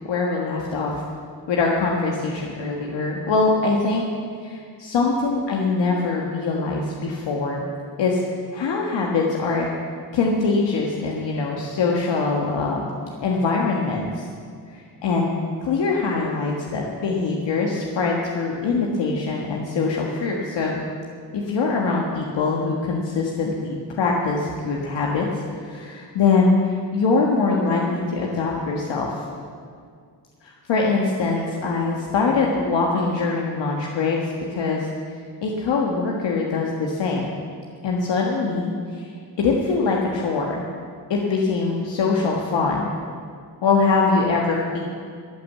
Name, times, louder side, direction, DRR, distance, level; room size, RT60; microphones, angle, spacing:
voice 1, 0.0-0.9 1.5-4.0 4.4-7.6 8.0-8.2 8.5-9.7 10.1-12.9 13.2-14.3 14.7-15.3 15.6-20.8 21.3-25.3 25.6-29.1 30.4-34.9 35.4-37.3 37.8-39.1 39.4-40.6 41.1-42.9 43.6-44.8, left 4 dB, 80° left, -1 dB, 1.6 m, -23 dB
14.0 x 8.9 x 7.4 m, 2.2 s
cardioid pair, 120°, 42 cm